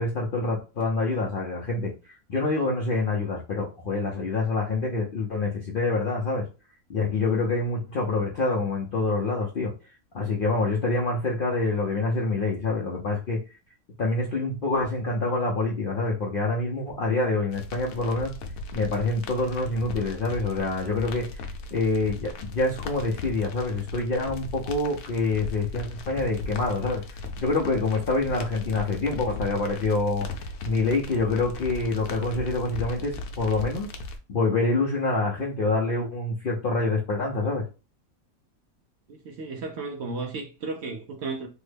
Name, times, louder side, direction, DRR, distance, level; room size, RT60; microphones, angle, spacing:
voice 1, 0.0-6.5 6.9-9.7 10.1-13.4 14.0-18.4 18.7-21.4 21.7-27.0 27.4-30.3 30.6-33.9 34.3-37.6, left 3 dB, 60° left, 0.6 m, -26 dB
sound 1, 17.5-34.2, left 2 dB, 75° left, 1.0 m, -38 dB
voice 2, 39.1-41.5, right 3 dB, 65° right, 0.7 m, -34 dB
3.5 x 2.1 x 3.3 m
omnidirectional pair, 1.5 m